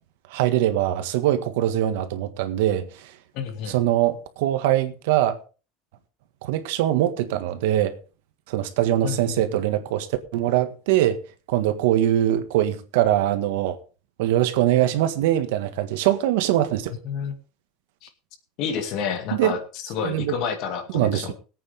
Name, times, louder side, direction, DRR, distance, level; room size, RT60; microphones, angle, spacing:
voice 1, 0.3-2.9 3.7-5.4 6.4-7.9 8.5-10.1 10.3-11.2 11.5-13.8 14.2-16.9 19.4-19.5 20.0-20.3 20.9-21.3, right 12 dB, 70° right, 1.6 m, -22 dB
voice 2, 3.3-3.8 9.0-9.4 17.0-17.3 18.0-18.1 18.6-21.3, left 6 dB, 45° left, 2.2 m, -29 dB
21.0 x 8.8 x 3.6 m
cardioid pair, 175°, 0 cm